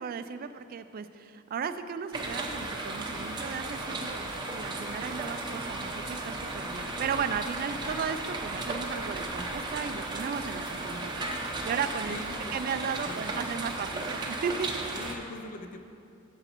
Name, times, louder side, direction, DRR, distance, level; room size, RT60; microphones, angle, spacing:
voice 1, 0.0-12.2 12.5-14.7, right 6 dB, 45° right, 11 dB, 0.3 m, -35 dB
sound 1, 2.1-15.2, right 2 dB, 20° right, 0.8 m, -35 dB
voice 2, 12.1-12.6 13.0-13.7 15.0-15.8, left 2 dB, 40° left, 6 dB, 0.4 m, -43 dB
12.0 x 7.8 x 3.0 m, 2.6 s
head